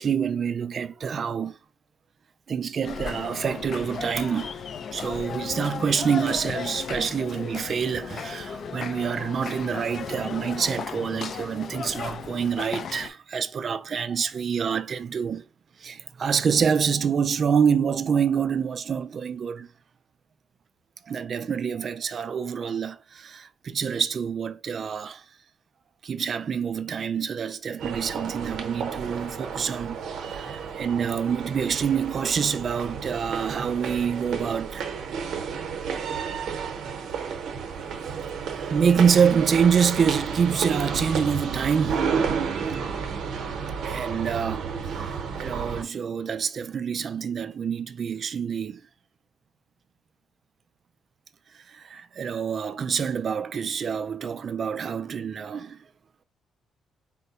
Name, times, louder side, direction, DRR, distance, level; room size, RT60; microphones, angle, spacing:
voice 1, 0.0-1.6 2.5-4.6 4.9-15.4 15.8-19.7 21.1-25.2 26.0-30.0 30.3-34.8 38.5-42.2 43.8-48.8 51.7-55.8, right 7 dB, 45° right, 0.3 m, -26 dB
sound 1, 2.8-13.1, left 6 dB, 55° left, 0.4 m, -35 dB
sound 2, 27.8-45.8, right 6 dB, 70° right, 0.8 m, -31 dB
4.4 x 2.2 x 4.0 m
cardioid pair, 110°, 0 cm